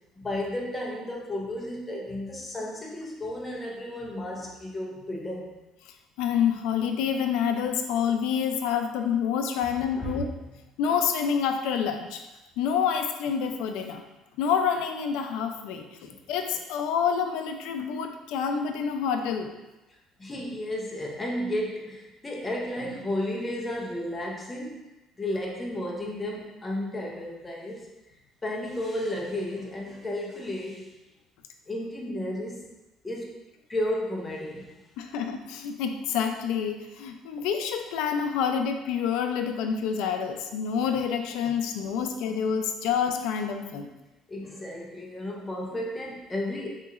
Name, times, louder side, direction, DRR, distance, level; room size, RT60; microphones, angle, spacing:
voice 1, 0.2-5.6 9.9-10.2 16.0-16.2 20.2-24.9 25.2-27.9 28.4-30.9 31.7-32.7 33.0-33.4 33.7-34.8 41.8-42.1 44.3-46.7, left 1 dB, 15° left, -2 dB, 0.6 m, -33 dB
voice 2, 6.2-10.3 10.8-12.2 12.6-14.0 14.4-19.6 35.0-43.9, left 7 dB, 85° left, 6 dB, 0.3 m, -27 dB
3.9 x 2.8 x 2.4 m, 1.0 s
cardioid pair, 140°, 0 cm